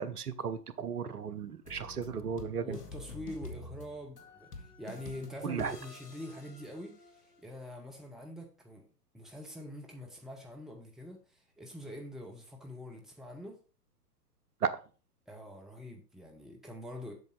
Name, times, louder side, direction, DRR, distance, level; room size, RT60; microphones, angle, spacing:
voice 1, 0.0-2.8 5.4-5.8 14.6-14.7, right 7 dB, 65° right, 13 dB, 1.0 m, -35 dB
sound 1, 1.6-7.4, left 2 dB, 70° left, 1.8 m, -48 dB
voice 2, 2.6-8.8 9.1-13.6 15.3-17.1, left 1 dB, ahead, 1 dB, 0.9 m, -45 dB
7.8 x 6.8 x 3.9 m, 0.35 s
figure-of-eight pair, 120°, 48 cm